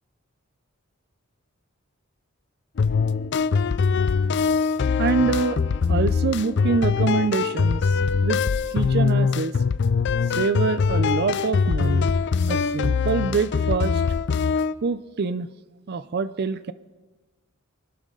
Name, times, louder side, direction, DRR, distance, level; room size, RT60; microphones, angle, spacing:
sound 1, 2.8-14.7, left 5 dB, 55° left, 0.4 m, -22 dB
voice 1, 5.0-5.6 5.9-8.4 8.7-9.5 10.3-12.2 12.5-14.0 14.8-15.5 15.9-16.7, right 4 dB, 50° right, 14 dB, 0.5 m, -25 dB
25.0 x 12.5 x 3.8 m, 1.2 s
head